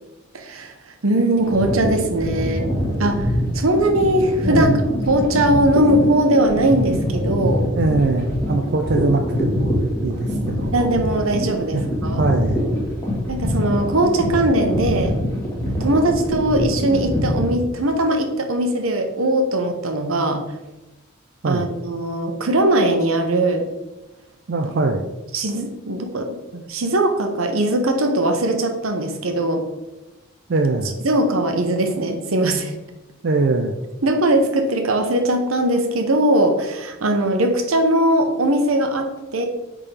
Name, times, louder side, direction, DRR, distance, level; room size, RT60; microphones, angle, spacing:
voice 1, 0.3-0.7 1.0-3.3 3.5-4.7 5.1-7.7 10.7-12.3 13.3-15.2 15.8-20.4 21.5-23.7 25.3-29.6 31.0-32.7 34.0-39.5, right 1 dB, 80° right, 5 dB, 0.9 m, -20 dB
sound 1, 1.4-17.5, equal, 15° left, 1.6 m, -24 dB
voice 2, 4.4-4.8 7.8-10.7 11.7-11.8 12.2-12.7 21.4-21.7 24.5-25.0 30.5-31.0 33.2-33.7, right 3 dB, 50° right, 3 dB, 0.4 m, -22 dB
8.4 x 3.7 x 3.4 m, 1.0 s
head